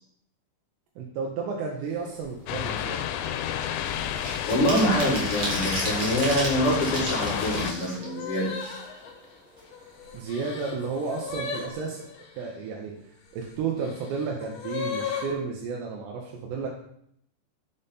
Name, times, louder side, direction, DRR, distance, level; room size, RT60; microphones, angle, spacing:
voice 1, 1.0-3.0 10.1-12.0 12.3-16.7, right 5 dB, 85° right, 0 dB, 2.9 m, -32 dB
sound 1, 1.9-2.3 2.9-5.2 5.8-6.2 6.6-12.5 13.3-15.3, left 6 dB, 70° left, 2.0 m, -38 dB
sound 2, 2.2-2.4 2.8-9.2 9.6-9.7 10.0-11.0 11.3-11.4 11.7-12.0, right 2 dB, 60° right, 1.0 m, -35 dB
sound 3, 2.5-7.7, left 10 dB, 90° left, 2.7 m, -30 dB
voice 2, 4.5-8.5, equal, 45° left, -5 dB, 2.2 m, -25 dB
6.8 x 5.3 x 4.1 m, 0.71 s
omnidirectional pair, 4.9 m